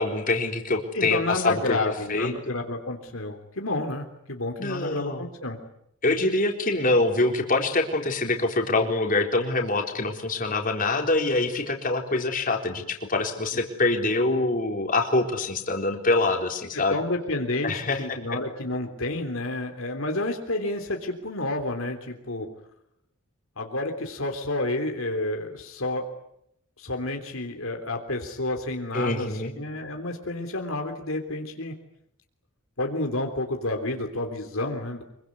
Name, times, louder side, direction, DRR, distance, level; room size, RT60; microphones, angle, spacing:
voice 1, 0.0-1.8 2.1-2.3 4.6-5.2 6.0-17.0 17.6-18.2 28.9-29.5, left 2 dB, 40° left, 3 dB, 4.0 m, -25 dB
voice 2, 0.9-5.6 16.7-22.5 23.6-26.1 26.8-31.7 32.8-35.0, left 2 dB, 70° left, 4 dB, 3.4 m, -30 dB
25.5 x 24.0 x 9.6 m, 0.76 s
head